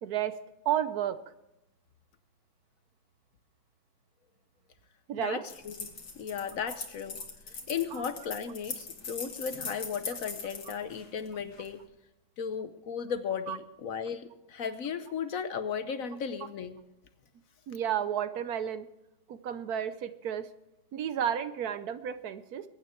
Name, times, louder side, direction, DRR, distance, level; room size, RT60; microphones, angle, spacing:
voice 1, 0.0-0.4 0.6-1.2 5.1-5.4 7.9-8.0 13.5-13.6 17.7-18.9 19.3-20.5 20.9-22.6, right 9 dB, 70° right, 13 dB, 1.2 m, -32 dB
voice 2, 5.2-5.9 6.1-7.2 7.5-11.8 12.4-16.8, left 7 dB, 60° left, 11 dB, 1.2 m, -35 dB
sound 1, 5.5-11.7, left 4 dB, 85° left, 2.5 m, -41 dB
22.0 x 9.4 x 4.5 m, 0.91 s
omnidirectional pair, 1.7 m